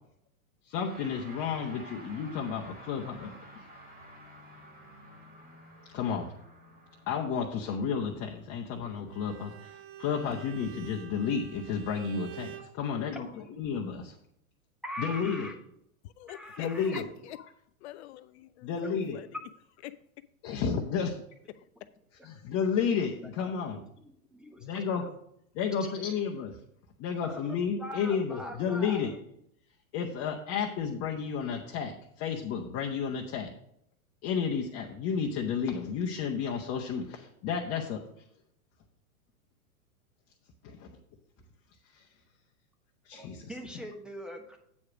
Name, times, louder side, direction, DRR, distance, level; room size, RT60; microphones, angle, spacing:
voice 1, 0.6-3.6 5.9-6.3 7.1-14.2 15.0-15.5 16.6-17.1 18.6-19.2 20.4-21.2 22.2-23.8 24.6-25.1 25.5-26.6 27.0-29.2 29.9-33.5 34.2-38.3 40.6-41.0 41.8-42.1 43.0-43.8, left 6 dB, 35° left, 1.1 m, -32 dB
sound 1, 0.9-10.3, right 1 dB, 20° right, 2.4 m, -52 dB
Bowed string instrument, 9.1-12.8, right 12 dB, 35° right, 0.8 m, -47 dB
voice 2, 14.8-15.5 16.3-17.0 24.0-25.1 27.2-27.4 27.8-29.1 43.1-44.6, equal, ahead, 1.0 m, -42 dB
voice 3, 16.0-17.4 17.8-19.3 19.8-20.0 21.6-21.7, left 13 dB, 50° left, 0.5 m, -45 dB
8.5 x 4.8 x 6.1 m
hypercardioid pair, 110°, 43 cm